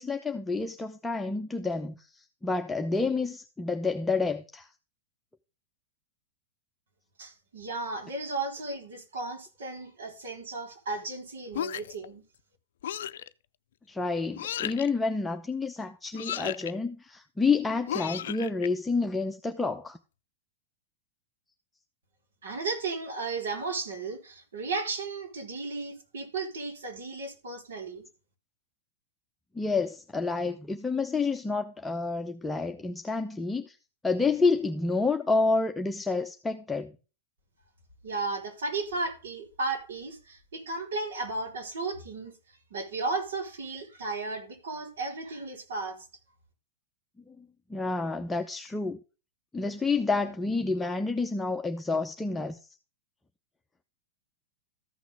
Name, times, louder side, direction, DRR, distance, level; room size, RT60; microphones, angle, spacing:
voice 1, 0.0-4.7 13.9-20.0 29.5-33.8 34.0-36.9 47.3-49.0 49.5-52.6, left 4 dB, 10° left, 0.8 m, -29 dB
voice 2, 7.2-12.2 22.4-28.0 38.0-42.3 42.7-46.1, right 3 dB, 70° right, 3.9 m, -34 dB
sound 1, 11.5-12.1 12.8-13.3 14.4-14.9 16.1-16.7 17.9-18.7, left 10 dB, 65° left, 0.5 m, -34 dB
14.0 x 6.1 x 3.4 m
figure-of-eight pair, 100°, 0 cm